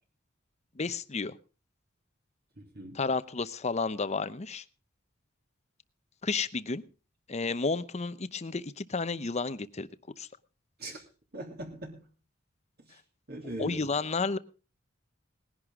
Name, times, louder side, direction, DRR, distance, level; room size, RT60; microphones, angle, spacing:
voice 1, 0.8-1.3 2.9-4.6 6.2-6.8 7.3-9.9 10.2-10.3 13.6-14.4, left 4 dB, 35° left, 14 dB, 0.8 m, -31 dB
voice 2, 2.6-3.0 10.8-11.0 11.3-12.1 12.8-13.0 13.3-13.8, right 1 dB, 55° right, 2 dB, 3.2 m, -41 dB
20.0 x 11.0 x 3.7 m, 0.35 s
head